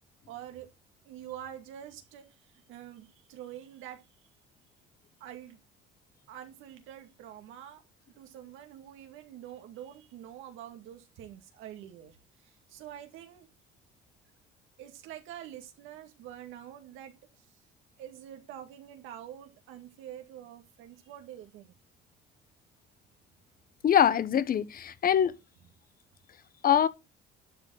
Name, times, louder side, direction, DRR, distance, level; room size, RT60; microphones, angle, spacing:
voice 1, 0.3-0.7 1.0-2.3 2.5-4.0 5.2-5.6 6.3-7.8 8.2-12.2 12.4-13.5 14.8-17.1 18.0-21.7, right 11 dB, 85° right, 2.2 m, -46 dB
voice 2, 23.8-25.3 26.6-26.9, left 9 dB, 45° left, 1.1 m, -23 dB
11.5 x 4.5 x 6.4 m
cardioid pair, 100°, 20 cm